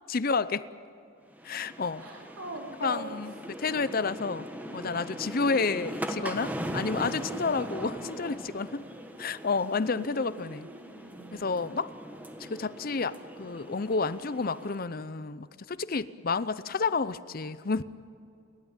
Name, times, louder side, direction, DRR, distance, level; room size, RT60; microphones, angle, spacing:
voice 1, 0.1-0.6 1.4-2.0 2.8-4.5 4.7-8.8 9.2-10.7 11.3-11.9 12.4-17.8, left 4 dB, 45° left, 15 dB, 0.6 m, -30 dB
sound 1, 1.3-14.8, right 1 dB, 10° right, 1.4 m, -40 dB
voice 2, 2.0-3.1 9.8-11.5, right 2 dB, 90° right, 0 dB, 4.4 m, -42 dB
30.0 x 13.0 x 9.0 m, 2.5 s
head